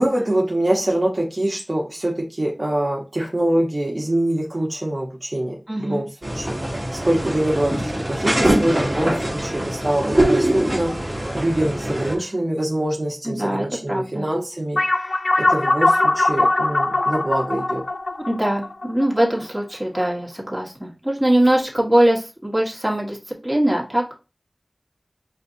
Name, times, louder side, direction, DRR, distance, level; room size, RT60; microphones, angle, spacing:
voice 1, 0.0-6.6 6.9-10.9 11.3-14.8 15.4-17.8, right 1 dB, 50° right, -2 dB, 1.0 m, -24 dB
voice 2, 5.7-6.0 13.2-14.3 18.3-24.1, right 1 dB, 10° right, -3 dB, 1.6 m, -22 dB
sound 1, 6.2-12.1, right 1 dB, 30° right, 1.4 m, -23 dB
sound 2, 14.8-19.6, left 2 dB, 80° left, 0.4 m, -21 dB
5.6 x 2.7 x 2.7 m, 0.30 s
wide cardioid pair, 50°, 0 cm